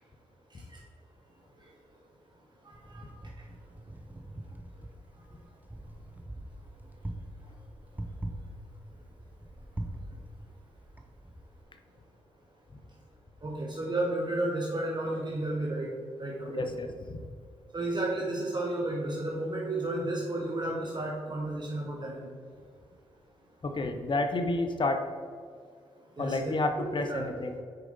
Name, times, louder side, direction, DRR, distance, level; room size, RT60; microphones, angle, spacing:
voice 1, 2.6-3.0 13.4-15.9 16.2-16.7 17.7-22.3 26.2-26.5 26.8-27.2, right 2 dB, 35° right, -2 dB, 1.2 m, -32 dB
Wind, 2.7-11.6, right 1 dB, 15° right, 0.9 m, -43 dB
voice 2, 16.5-17.2 23.6-25.0 26.2-27.6, left 2 dB, 40° left, 6 dB, 0.8 m, -30 dB
6.6 x 4.9 x 4.0 m, 2.1 s
hypercardioid pair, 45°, 13 cm